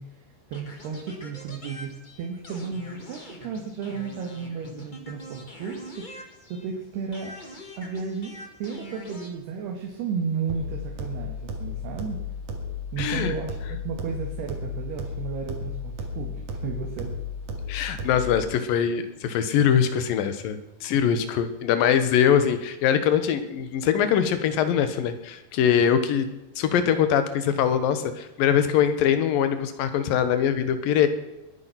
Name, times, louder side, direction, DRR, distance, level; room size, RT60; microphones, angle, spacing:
voice 1, 0.0-6.1 6.5-7.4 7.8-12.2 12.9-17.2, right 6 dB, 85° right, 1 dB, 3.7 m, -33 dB
sound 1, 0.5-6.8 7.1-9.3, left 1 dB, 35° left, 0.7 m, -43 dB
sound 2, 10.5-18.5, left 3 dB, 55° right, 2.9 m, -34 dB
voice 2, 13.0-13.3 17.7-26.3 26.6-31.1, left 8 dB, 70° left, 10 dB, 2.8 m, -22 dB
21.5 x 9.8 x 5.9 m, 0.95 s
omnidirectional pair, 4.5 m